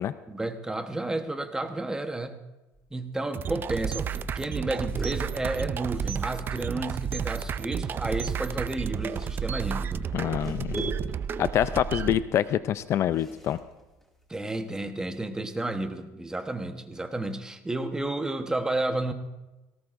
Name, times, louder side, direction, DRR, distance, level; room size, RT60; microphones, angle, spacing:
voice 1, 0.3-2.4 2.9-10.0 14.3-19.1, right 2 dB, 10° right, 8 dB, 1.0 m, -31 dB
sound 1, 2.7-3.2 3.5-3.6 3.9-4.1 4.4-6.8 7.9-14.8, right 1 dB, 5° left, 2.2 m, -43 dB
sound 2, 3.3-12.2, right 7 dB, 35° right, 0.5 m, -32 dB
voice 2, 10.1-10.8 11.4-13.6, left 11 dB, 50° left, 14 dB, 0.4 m, -26 dB
18.5 x 17.5 x 2.6 m, 1.1 s
cardioid pair, 115°, 6 cm